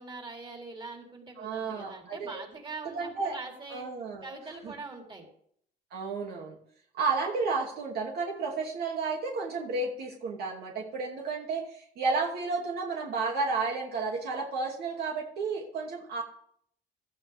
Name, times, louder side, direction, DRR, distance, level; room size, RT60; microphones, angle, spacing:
voice 1, 0.0-3.9 4.2-5.3, right 3 dB, 30° right, 0 dB, 4.3 m, -43 dB
voice 2, 1.4-2.4 2.8-3.4 3.7-4.3 4.6-4.7 5.9-6.6 6.9-16.2, right 4 dB, 70° right, 0 dB, 2.7 m, -32 dB
16.5 x 13.5 x 3.6 m, 0.65 s
cardioid pair, 110°, 17 cm